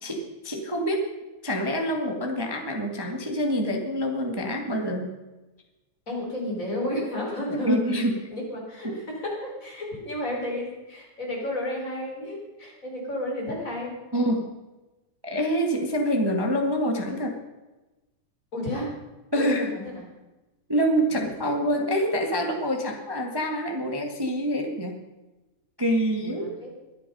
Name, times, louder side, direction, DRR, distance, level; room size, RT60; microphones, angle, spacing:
voice 1, 0.0-1.1 1.4-5.1 7.6-8.1 8.8-9.0 14.1-14.5 15.2-17.4 19.3-19.7 20.7-25.0 25.8-26.6, equal, 20° right, 2 dB, 0.6 m, -26 dB
voice 2, 6.1-7.9 8.3-14.0 18.5-18.9 19.4-19.8 26.2-26.7, left 1 dB, 25° left, -2 dB, 4.5 m, -32 dB
23.0 x 8.4 x 5.4 m, 1.1 s
omnidirectional pair, 3.4 m